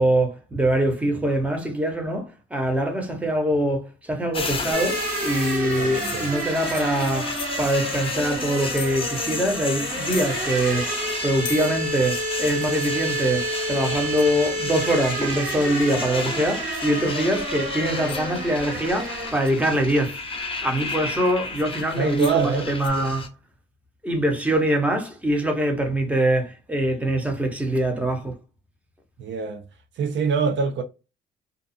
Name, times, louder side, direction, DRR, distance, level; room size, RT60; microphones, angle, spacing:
voice 1, 0.0-10.9 11.2-23.3 24.0-28.4, right 1 dB, 5° right, 0.9 m, -24 dB
sound 1, 4.3-23.3, left 3 dB, 25° left, 0.8 m, -33 dB
sound 2, 4.7-19.3, right 1 dB, 40° right, 1.3 m, -30 dB
voice 2, 5.6-6.3 22.0-23.1 29.2-29.6 30.0-30.8, right 5 dB, 65° right, 0.6 m, -25 dB
sound 3, 6.0-9.1 9.4-9.5 9.8-10.8 11.1-13.6 14.2-14.6 15.0-15.6 16.0-16.4 16.7-17.0 17.6-17.7 18.1-18.4 19.0-19.9 20.4-22.4 22.8-22.9, left 10 dB, 70° left, 0.5 m, -40 dB
2.5 x 2.3 x 2.5 m
cardioid pair, 90°, 20 cm